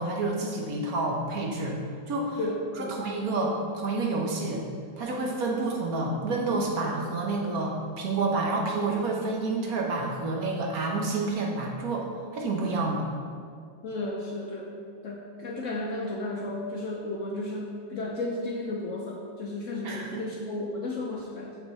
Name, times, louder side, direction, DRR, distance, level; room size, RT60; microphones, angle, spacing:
voice 1, 0.0-1.8 2.1-2.4 2.8-4.6 5.0-12.0 12.3-13.1 19.8-20.2, right 3 dB, 60° right, 0 dB, 1.3 m, -29 dB
voice 2, 2.4-2.9 13.8-21.6, left 2 dB, 60° left, -1 dB, 0.8 m, -33 dB
6.4 x 6.0 x 4.1 m, 2.2 s
omnidirectional pair, 1.9 m